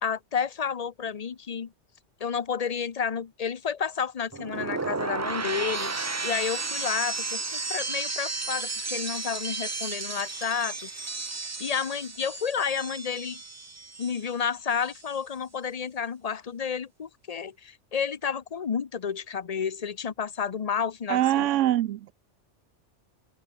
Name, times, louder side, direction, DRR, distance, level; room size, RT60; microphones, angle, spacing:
voice 1, 0.0-1.7 2.2-10.9 11.6-13.4 14.0-21.5, left 7 dB, 40° left, 0.7 m, -31 dB
sound 1, 4.3-14.4 14.7-15.1, right 3 dB, 25° right, 0.3 m, -33 dB
sound 2, 5.4-12.7, right 5 dB, 65° right, 2.1 m, -53 dB
voice 2, 21.1-22.1, right 13 dB, 90° right, 1.0 m, -23 dB
omnidirectional pair, 1.2 m